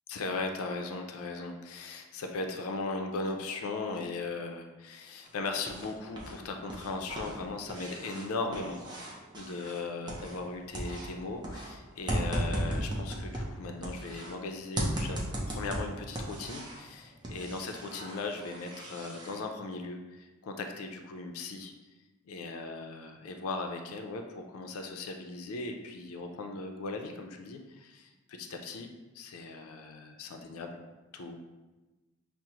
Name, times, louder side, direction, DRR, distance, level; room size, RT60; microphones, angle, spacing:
voice 1, 0.1-15.2 15.5-21.7 22.3-28.9 29.1-30.8 31.1-31.4, left 3 dB, 90° left, 4 dB, 0.4 m, -38 dB
sound 1, 5.2-6.4 6.6-10.5 10.7-14.3 14.8-16.9 17.2-19.4, right 1 dB, 20° right, 0.5 m, -36 dB
5.9 x 2.0 x 2.8 m, 1.2 s
head